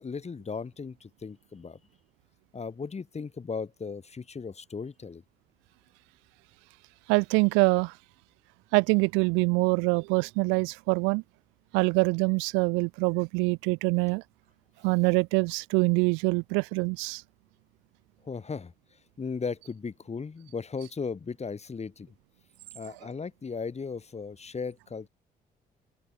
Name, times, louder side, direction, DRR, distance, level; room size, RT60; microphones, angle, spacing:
voice 1, 0.0-1.8 2.5-5.2 18.2-22.1 22.7-25.1, left 5 dB, 30° left, 2.3 m, -37 dB
voice 2, 7.1-7.9 8.7-11.2 11.7-14.2 14.8-17.2, right 31 dB, 65° right, 0.7 m, -24 dB
open air
figure-of-eight pair, 40°, 21 cm